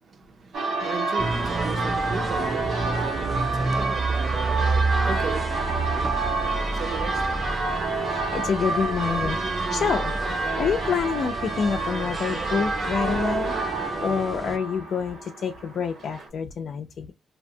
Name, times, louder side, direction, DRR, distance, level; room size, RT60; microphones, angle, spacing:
voice 1, 0.0-8.4, right 5 dB, 60° right, 0.6 m, -37 dB
Church bell, 0.5-16.3, right 3 dB, 85° right, 1.3 m, -29 dB
sound 1, 1.2-14.6, right 2 dB, 20° right, 0.3 m, -30 dB
voice 2, 8.1-9.4 9.7-10.2 10.6-13.5 14.0-17.1, left 6 dB, 70° left, 0.4 m, -27 dB
2.8 x 2.1 x 2.6 m
wide cardioid pair, 130°, 0 cm